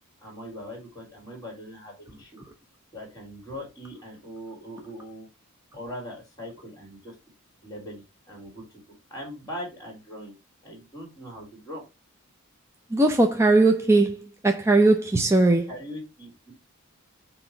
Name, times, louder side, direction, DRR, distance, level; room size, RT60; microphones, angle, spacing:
voice 1, 0.2-2.3 2.9-5.3 5.7-7.2 7.6-8.8 9.1-10.4 10.6-11.8 15.7-16.5, equal, 15° left, 3.6 m, -40 dB
voice 2, 12.9-14.2 14.4-15.7, right 2 dB, 10° right, 0.5 m, -19 dB
7.5 x 3.0 x 4.4 m
head